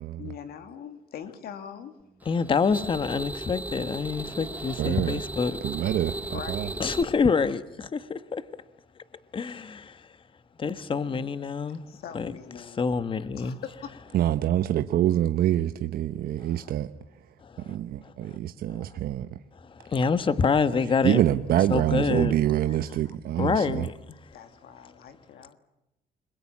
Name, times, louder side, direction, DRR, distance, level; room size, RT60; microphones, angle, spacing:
voice 1, 0.2-1.9 6.3-6.8 11.9-12.8 13.3-14.0 24.3-25.6, left 8 dB, 65° left, 2.5 m, -42 dB
voice 2, 2.2-5.6 6.8-8.4 9.3-10.0 10.6-11.8 12.1-12.3 12.6-13.6 17.4-17.7 18.3-18.4 18.7-18.8 19.6-21.2 21.7-22.3 23.4-23.9, left 5 dB, 30° left, 1.4 m, -27 dB
sound 1, 2.2-7.0, right 2 dB, 10° right, 1.2 m, -36 dB
voice 3, 4.8-5.2 5.6-6.7 14.1-16.9 17.7-19.3 21.0-23.9, right 12 dB, 65° right, 1.1 m, -25 dB
29.5 x 22.0 x 7.4 m
cardioid pair, 110°, 17 cm